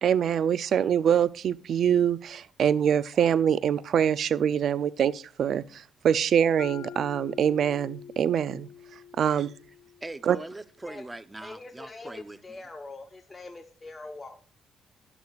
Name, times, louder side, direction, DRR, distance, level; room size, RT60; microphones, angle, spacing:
voice 1, 0.0-8.7 9.2-9.5 10.2-10.4, right 8 dB, 65° right, 0.5 m, -24 dB
Mallet percussion, 6.6-10.6, left 8 dB, 65° left, 0.8 m, -45 dB
voice 2, 10.0-12.4, right 2 dB, 15° right, 0.7 m, -41 dB
voice 3, 11.4-14.4, left 3 dB, 20° left, 0.9 m, -43 dB
11.0 x 10.5 x 2.4 m
cardioid pair, 90°, 0 cm